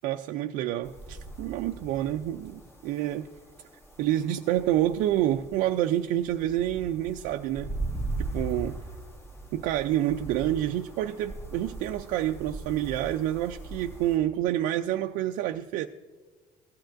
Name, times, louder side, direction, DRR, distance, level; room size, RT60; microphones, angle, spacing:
voice 1, 0.0-3.3 4.0-7.7 8.2-8.8 9.5-15.9, right 12 dB, 85° right, 6 dB, 0.4 m, -28 dB
sound 1, 0.8-14.2, right 2 dB, 20° left, 1.2 m, -40 dB
16.0 x 11.5 x 2.6 m, 1.4 s
cardioid pair, 150°, 14 cm